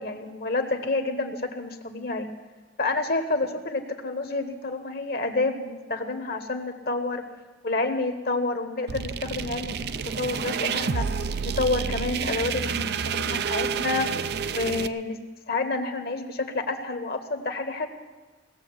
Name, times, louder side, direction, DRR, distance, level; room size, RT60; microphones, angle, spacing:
voice 1, 0.0-2.3 2.8-7.3 7.6-15.2 15.5-17.9, left 3 dB, 55° left, 7 dB, 1.3 m, -29 dB
sound 1, 8.9-14.9, right 6 dB, 55° right, 0.5 m, -29 dB
18.0 x 7.2 x 9.5 m, 1.3 s
head